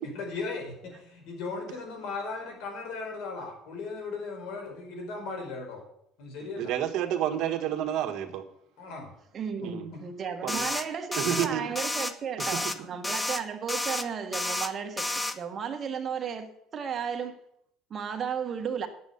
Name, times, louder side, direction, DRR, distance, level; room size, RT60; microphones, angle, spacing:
voice 1, 0.1-5.8 6.2-6.7 8.8-9.1 9.6-9.7, left 4 dB, 80° left, 5.0 m, -37 dB
voice 2, 6.6-8.4 9.6-9.9 10.4-10.7 11.1-11.7 12.5-12.9, right 10 dB, 60° right, 1.6 m, -30 dB
voice 3, 9.3-15.1 15.3-17.3 17.9-18.9, right 7 dB, 35° right, 1.5 m, -34 dB
sound 1, 10.5-10.8 11.1-11.5 11.8-12.1 12.4-12.8 13.0-13.4 13.7-14.0 14.3-14.7 15.0-15.3, left 2 dB, 10° left, 0.8 m, -30 dB
10.0 x 7.8 x 6.8 m
cardioid pair, 135°, 0 cm